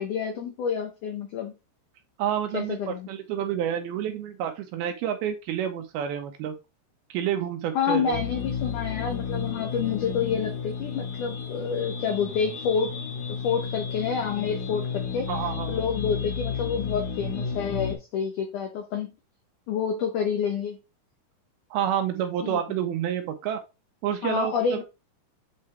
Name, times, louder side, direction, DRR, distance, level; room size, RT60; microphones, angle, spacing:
voice 1, 0.0-1.5 2.5-3.1 7.8-13.0 13.4-15.3 15.7-19.1 19.7-20.8 22.4-22.6 24.2-24.8, left 7 dB, 80° left, 4 dB, 1.8 m, -28 dB
voice 2, 2.2-6.5 7.1-8.2 15.3-15.8 21.7-23.6 24.0-24.8, right 9 dB, 80° right, 6 dB, 2.5 m, -29 dB
sound 1, 8.1-18.0, left 6 dB, 65° left, 2.1 m, -32 dB
8.5 x 3.9 x 3.3 m, 0.26 s
omnidirectional pair, 4.8 m